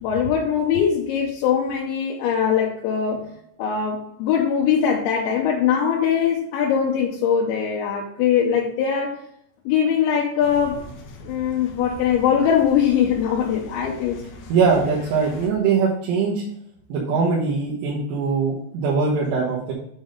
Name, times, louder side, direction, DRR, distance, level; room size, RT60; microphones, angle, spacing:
voice 1, 0.0-3.2 3.6-9.2 9.7-10.8 11.2-14.2, left 8 dB, 90° left, -2 dB, 3.1 m, -21 dB
sound 1, 10.4-15.5, left 1 dB, 70° left, 2.6 m, -41 dB
voice 2, 14.5-16.4 16.9-19.7, right 5 dB, 80° right, -6 dB, 3.2 m, -21 dB
7.9 x 3.7 x 5.1 m, 0.74 s
omnidirectional pair, 5.1 m